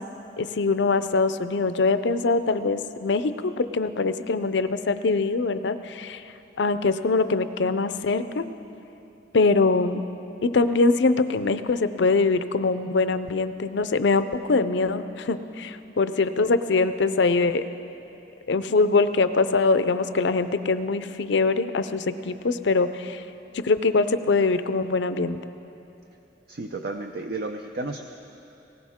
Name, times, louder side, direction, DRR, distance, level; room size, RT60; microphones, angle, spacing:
voice 1, 0.4-6.2 6.6-8.5 9.3-10.0 10.4-17.6 18.5-23.2 23.5-25.4, left 3 dB, 70° left, 12 dB, 0.5 m, -23 dB
voice 2, 26.5-28.0, right 2 dB, 55° right, 4 dB, 0.5 m, -32 dB
19.5 x 17.5 x 3.6 m, 2.9 s
head